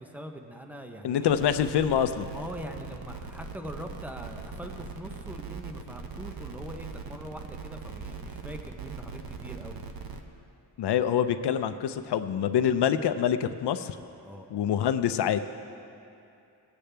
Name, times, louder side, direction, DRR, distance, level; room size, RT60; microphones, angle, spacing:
voice 1, 0.0-1.3 2.3-9.8 14.2-14.5, equal, 5° right, 4 dB, 0.7 m, -42 dB
voice 2, 1.0-2.3 10.8-14.0 14.5-15.4, left 9 dB, 75° left, 10 dB, 0.6 m, -26 dB
sound 1, 1.3-10.2, right 5 dB, 60° right, 0.8 m, -40 dB
19.0 x 8.4 x 3.4 m, 2.6 s
wide cardioid pair, 135°, 41 cm